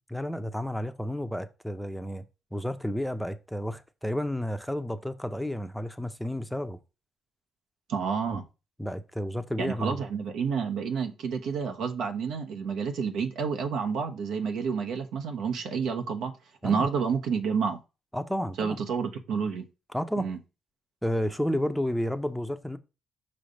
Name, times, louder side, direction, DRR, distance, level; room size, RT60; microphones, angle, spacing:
voice 1, 0.1-2.2 2.5-6.8 8.8-10.0 16.6-16.9 18.1-18.8 19.9-20.3 21.0-22.8, equal, ahead, 0.6 m, -31 dB
voice 2, 7.9-8.4 9.6-16.3 16.6-17.8 18.6-19.7 20.2-20.4, right 6 dB, 80° right, 1.0 m, -29 dB
5.5 x 3.3 x 5.1 m
cardioid pair, 90°, 0 cm